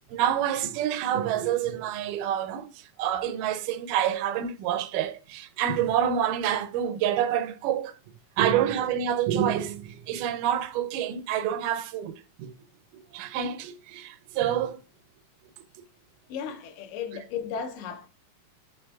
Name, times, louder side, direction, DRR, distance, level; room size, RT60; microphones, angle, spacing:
voice 1, 0.1-2.7 3.0-7.9 8.4-12.5 12.9-14.8, right 10 dB, 85° right, 2.1 m, -27 dB
voice 2, 16.3-18.1, left 7 dB, 85° left, 2.5 m, -35 dB
4.7 x 4.5 x 2.3 m
omnidirectional pair, 3.8 m